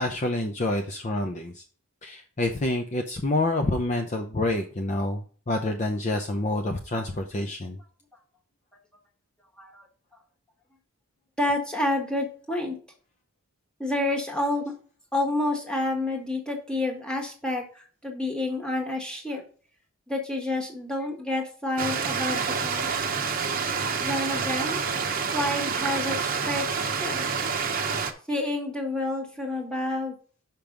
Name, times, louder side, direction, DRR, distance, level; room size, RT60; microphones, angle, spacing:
voice 1, 0.0-1.6 2.0-7.8, left 2 dB, 35° left, 4 dB, 0.6 m, -28 dB
voice 2, 11.4-12.7 13.8-14.7 15.1-19.4 20.1-23.1 24.0-24.8 25.3-27.3 28.3-30.1, left 2 dB, 5° left, 0 dB, 1.5 m, -29 dB
Stream, 21.8-28.1, right 5 dB, 40° right, 0.8 m, -28 dB
5.9 x 5.3 x 5.1 m, 0.42 s
head